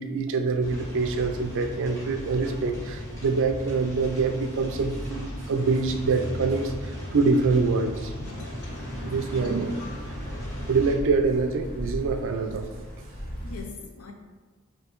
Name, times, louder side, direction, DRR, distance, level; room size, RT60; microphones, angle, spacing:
voice 1, 0.0-8.1 9.0-9.8 10.7-12.7, right 4 dB, 60° right, 6 dB, 0.4 m, -25 dB
sound 1, 0.6-10.9, equal, 15° left, 1.3 m, -36 dB
voice 2, 7.9-8.8 9.4-10.0 13.4-14.1, left 5 dB, 75° left, 3 dB, 0.6 m, -44 dB
sound 2, 8.6-13.6, equal, 40° left, 0.9 m, -39 dB
5.1 x 2.7 x 3.1 m, 1.2 s
head